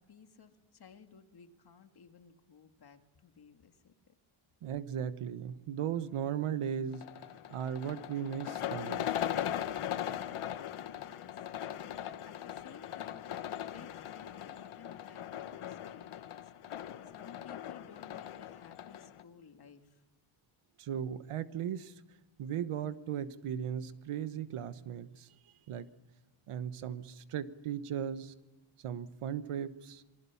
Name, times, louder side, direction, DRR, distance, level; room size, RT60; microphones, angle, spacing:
voice 1, 0.0-4.1 11.0-11.4 11.6-20.0, left 7 dB, 50° left, 7 dB, 1.9 m, -57 dB
voice 2, 4.6-7.1 7.5-9.1 20.8-21.9 22.4-25.3 25.7-25.9 26.5-28.3 28.8-30.0, right 9 dB, 90° right, 13 dB, 1.2 m, -37 dB
sound 1, 6.9-19.2, left 11 dB, 80° left, 1.3 m, -39 dB
27.5 x 20.5 x 7.2 m, 1.2 s
wide cardioid pair, 160°, 49 cm